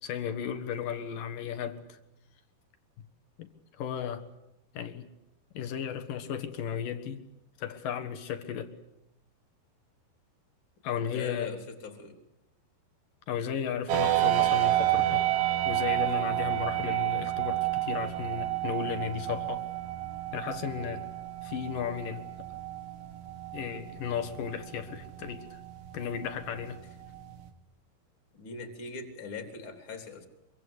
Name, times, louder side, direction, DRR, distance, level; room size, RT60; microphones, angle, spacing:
voice 1, 0.0-2.0 3.4-3.5 3.8-4.2 4.7-5.1 5.5-7.2 7.6-8.7 10.8-11.5 13.3-15.3 15.6-19.6 20.3-21.0 21.4-22.2 23.5-25.6 25.9-26.8, left 8 dB, 60° left, 7 dB, 2.8 m, -35 dB
voice 2, 11.0-12.2 14.2-14.3 28.3-30.3, left 4 dB, 30° left, 6 dB, 3.7 m, -41 dB
sound 1, 13.9-27.5, right 15 dB, 75° right, 4.0 m, -31 dB
26.0 x 24.0 x 8.3 m, 0.85 s
omnidirectional pair, 4.9 m